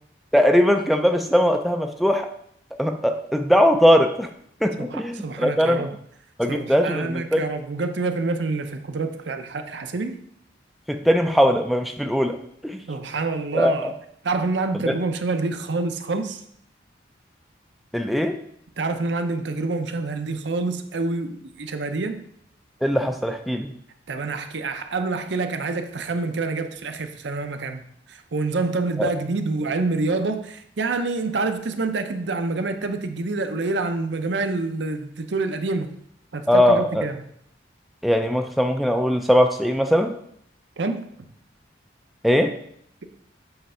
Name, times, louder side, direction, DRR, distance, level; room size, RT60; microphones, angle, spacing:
voice 1, 0.3-2.3 2.8-4.3 4.6-5.9 6.4-7.5 10.9-12.8 13.5-14.0 14.8-15.0 17.9-18.4 22.8-23.7 29.0-29.1 36.5-37.0 38.0-40.1 42.2-42.5, equal, ahead, 5 dB, 0.3 m, -20 dB
voice 2, 4.8-5.9 6.5-10.2 12.9-13.9 14.2-16.4 18.8-22.2 24.1-35.9 36.3-37.2 40.8-41.1, right 3 dB, 70° right, 7 dB, 0.6 m, -27 dB
7.9 x 3.2 x 5.5 m, 0.70 s
head